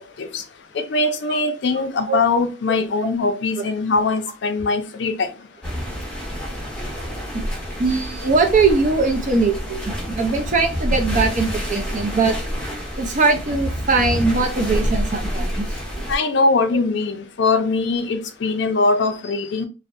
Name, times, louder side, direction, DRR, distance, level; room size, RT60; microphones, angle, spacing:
voice 1, 0.7-5.3 16.1-19.7, left 3 dB, 60° left, 0.4 m, -21 dB
sound 1, 5.6-16.2, equal, 5° left, 0.7 m, -27 dB
voice 2, 7.8-12.4 13.0-15.7, right 3 dB, 40° right, 0.5 m, -20 dB
2.6 x 2.0 x 2.4 m
head